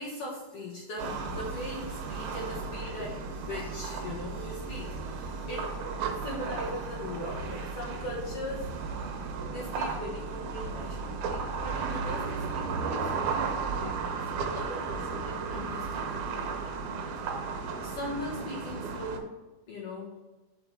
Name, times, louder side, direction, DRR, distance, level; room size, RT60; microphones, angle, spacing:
voice 1, 0.0-9.2 9.5-16.7 17.1-17.4 17.8-19.3 19.7-20.1, left 1 dB, 55° left, -4 dB, 2.1 m, -40 dB
sound 1, 1.0-19.2, right 5 dB, 75° right, 2.3 m, -34 dB
7.5 x 5.8 x 4.5 m, 1.1 s
omnidirectional pair, 3.7 m